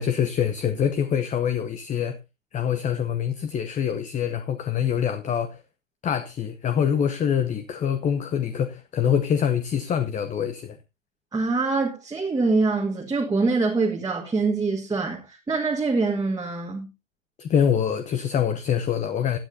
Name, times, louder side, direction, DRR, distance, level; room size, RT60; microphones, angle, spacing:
voice 1, 0.0-2.2 2.5-5.6 6.0-10.8 17.4-19.4, left 8 dB, 20° left, 0.7 m, -25 dB
voice 2, 11.3-16.9, right 3 dB, 10° right, 1.5 m, -24 dB
16.5 x 9.4 x 2.7 m
hypercardioid pair, 115°, 39 cm